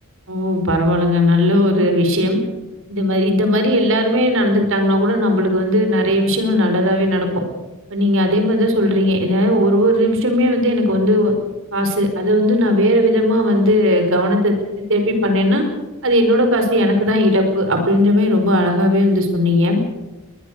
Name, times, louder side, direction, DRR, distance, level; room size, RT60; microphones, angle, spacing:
voice 1, 0.3-2.4 2.9-7.3 7.9-11.3 11.7-15.6 16.0-19.8, left 1 dB, 65° right, 5 dB, 4.9 m, -17 dB
22.0 x 20.5 x 6.6 m, 1.1 s
head